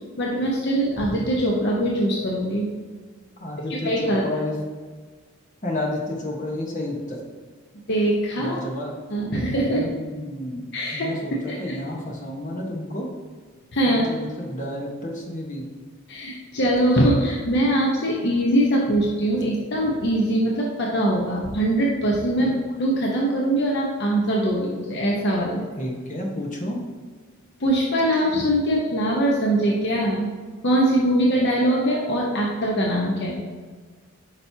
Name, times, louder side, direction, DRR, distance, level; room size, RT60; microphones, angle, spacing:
voice 1, 0.2-2.7 3.7-4.2 7.9-8.6 9.1-9.8 10.7-11.1 11.5-11.8 13.7-14.1 16.1-25.7 27.6-30.3 30.6-33.4, right 1 dB, 55° left, -2 dB, 0.9 m, -22 dB
voice 2, 3.4-4.6 5.6-7.2 8.4-8.9 9.7-13.1 13.9-15.6 22.4-22.5 25.8-26.8, left 1 dB, 35° left, 0 dB, 1.2 m, -31 dB
9.0 x 5.2 x 2.8 m, 1.5 s
head